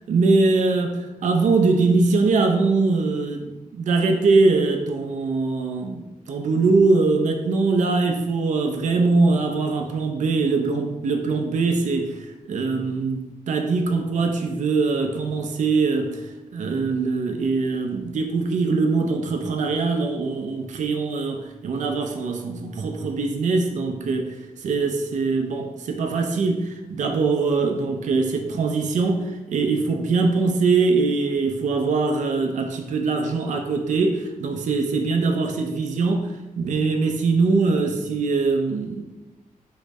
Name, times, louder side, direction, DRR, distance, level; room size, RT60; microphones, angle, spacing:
voice 1, 0.1-39.0, right 3 dB, 60° right, 3 dB, 0.4 m, -22 dB
3.7 x 2.0 x 3.4 m, 1.1 s
wide cardioid pair, 125°, 14 cm